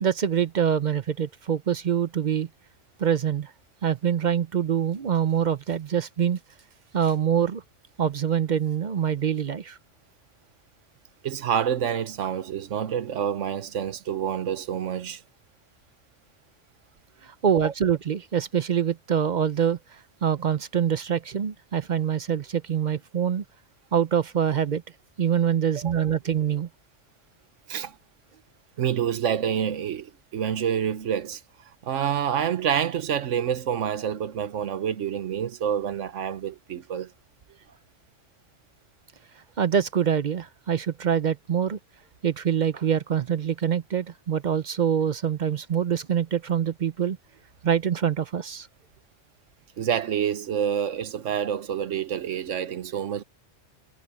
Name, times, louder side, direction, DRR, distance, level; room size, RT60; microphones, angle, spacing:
voice 1, 0.0-2.5 3.0-3.5 3.8-6.4 6.9-7.6 8.0-9.8 17.2-23.4 23.9-24.8 25.2-26.7 39.6-41.8 42.2-47.2 47.6-48.7, right 8 dB, 50° right, 0.6 m, -25 dB
voice 2, 11.2-15.2 17.5-17.7 25.8-25.9 27.7-27.9 28.8-31.4 31.8-37.1 49.8-53.2, right 8 dB, 80° right, 1.2 m, -27 dB
omnidirectional pair, 1.2 m